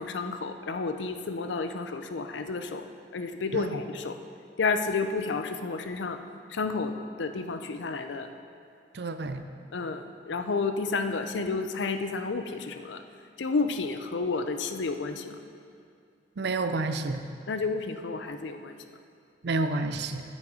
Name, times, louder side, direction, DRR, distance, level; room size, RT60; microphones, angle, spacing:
voice 1, 0.0-2.8 3.1-4.2 4.6-6.2 6.5-8.3 9.7-13.0 13.4-15.4 17.5-18.8, left 4 dB, 85° left, 8 dB, 0.6 m, -31 dB
voice 2, 8.9-9.4 16.4-17.2 19.4-20.2, right 3 dB, 65° right, 8 dB, 0.5 m, -29 dB
8.8 x 6.4 x 4.9 m, 2.5 s
head